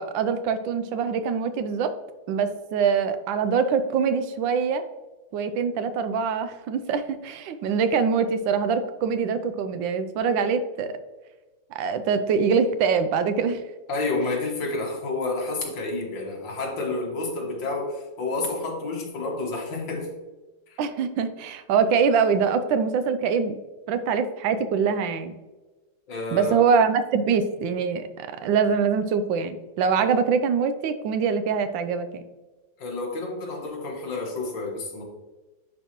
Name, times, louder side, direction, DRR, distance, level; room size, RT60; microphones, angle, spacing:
voice 1, 0.0-1.9 2.3-4.8 5.3-10.9 11.7-13.6 20.8-23.6 23.9-25.4 26.3-32.2, right 6 dB, 85° right, 10 dB, 1.4 m, -24 dB
voice 2, 13.9-20.1 20.7-20.8 26.1-26.6 32.8-35.0, left 2 dB, 80° left, -1 dB, 2.1 m, -29 dB
10.0 x 4.3 x 3.0 m, 1.2 s
omnidirectional pair, 2.0 m